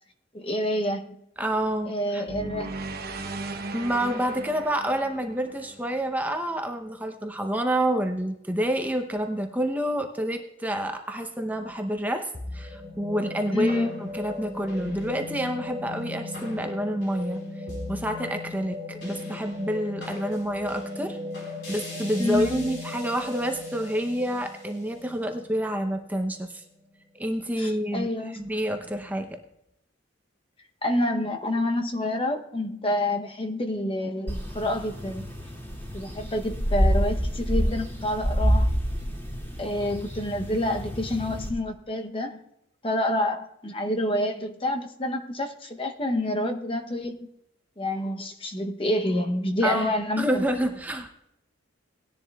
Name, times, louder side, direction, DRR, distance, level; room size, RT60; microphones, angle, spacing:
voice 1, 0.3-1.2 1.9-2.7 13.5-13.9 22.2-22.7 27.6-28.4 30.8-35.3 35.9-38.7 39.6-42.4 42.8-47.2 47.8-50.4, left 1 dB, 25° left, 5 dB, 0.8 m, -28 dB
voice 2, 1.4-2.2 3.7-21.2 21.7-26.6 27.2-28.1 28.3-29.4 49.6-51.1, right 1 dB, 10° right, 5 dB, 0.7 m, -28 dB
sound 1, 2.3-6.5, right 3 dB, 50° right, 0.9 m, -37 dB
sound 2, 12.3-26.8, left 2 dB, 65° left, 4.1 m, -37 dB
sound 3, 34.3-41.5, equal, 10° left, 2.2 m, -27 dB
18.5 x 10.5 x 2.3 m, 0.82 s
head